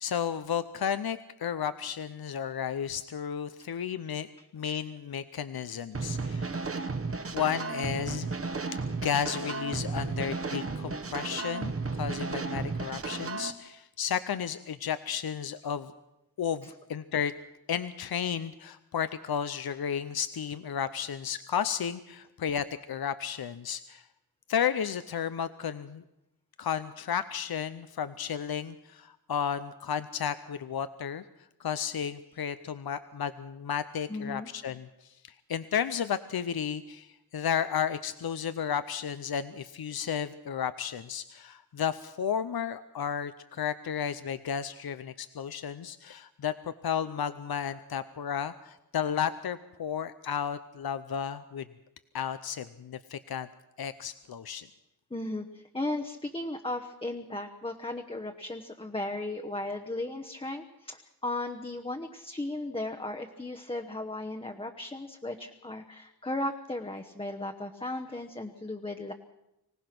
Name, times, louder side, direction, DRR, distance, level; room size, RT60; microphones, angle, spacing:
voice 1, 0.0-4.3 4.5-6.6 7.3-8.3 8.9-15.9 16.4-17.3 17.7-24.1 24.5-26.0 26.6-31.2 31.6-46.5 46.8-51.7 52.1-53.5 53.8-54.7, left 8 dB, 75° left, 12 dB, 0.7 m, -33 dB
sound 1, 5.9-13.5, right 4 dB, 35° right, 1.1 m, -34 dB
voice 2, 34.1-34.5 55.1-69.1, left 2 dB, 15° left, 4 dB, 1.0 m, -36 dB
25.0 x 17.5 x 6.0 m, 0.89 s
wide cardioid pair, 120°, 37 cm